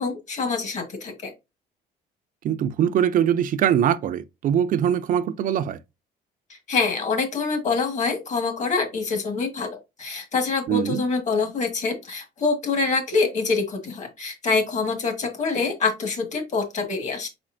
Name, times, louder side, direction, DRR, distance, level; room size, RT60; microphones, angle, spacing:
voice 1, 0.0-1.3 6.5-17.3, left 4 dB, 45° left, 1.6 m, -25 dB
voice 2, 2.4-5.8 10.7-11.0, right 9 dB, 55° right, 0.4 m, -22 dB
4.3 x 4.1 x 2.5 m
cardioid pair, 110°, 17 cm